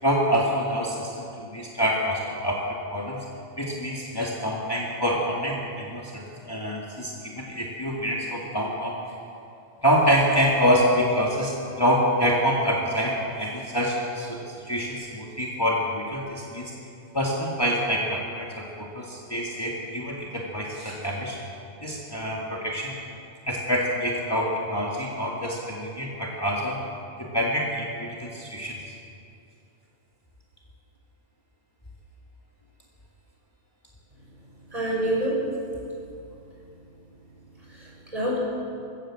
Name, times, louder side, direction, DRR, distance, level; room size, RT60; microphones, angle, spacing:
voice 1, 0.0-3.3 3.6-9.2 9.8-16.7 17.1-21.4 21.8-22.9 23.4-26.8 27.2-28.9, equal, 20° left, -4 dB, 2.1 m, -26 dB
voice 2, 34.7-35.3 37.7-38.4, right 1 dB, 30° right, -5 dB, 6.8 m, -27 dB
21.5 x 16.0 x 7.6 m, 2.6 s
omnidirectional pair, 1.3 m